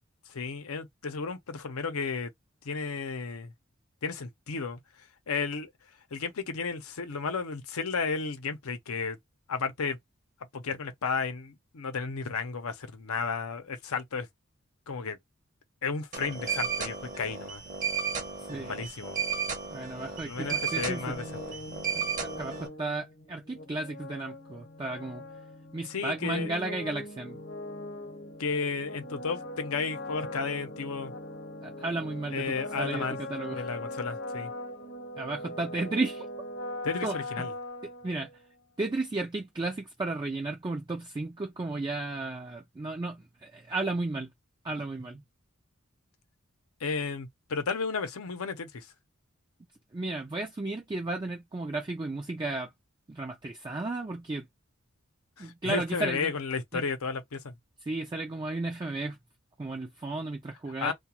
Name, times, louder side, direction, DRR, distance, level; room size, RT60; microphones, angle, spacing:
voice 1, 0.3-2.3 2.6-3.5 4.0-5.7 6.1-9.2 9.5-10.0 10.5-14.3 14.9-15.2 15.8-17.6 18.5-19.2 20.2-21.2 21.5-21.7 25.8-26.5 28.4-31.1 32.3-33.2 33.5-34.5 36.8-37.5 46.8-48.9 55.4-57.6 60.8-60.9, left 5 dB, 85° left, 0.7 m, -33 dB
sound 1, 16.1-22.7, right 6 dB, 35° right, 0.7 m, -34 dB
voice 2, 18.5-18.8 19.7-21.1 22.0-25.2 25.7-27.4 31.6-33.7 35.2-36.3 37.0-37.5 37.8-38.3 38.8-44.3 44.6-45.2 49.9-52.7 53.1-54.5 55.4-56.3 56.7-56.8 57.9-59.2 59.6-60.9, right 2 dB, 20° right, 0.3 m, -34 dB
sound 2, 20.9-38.5, left 2 dB, 55° left, 0.9 m, -41 dB
2.3 x 2.3 x 2.9 m
head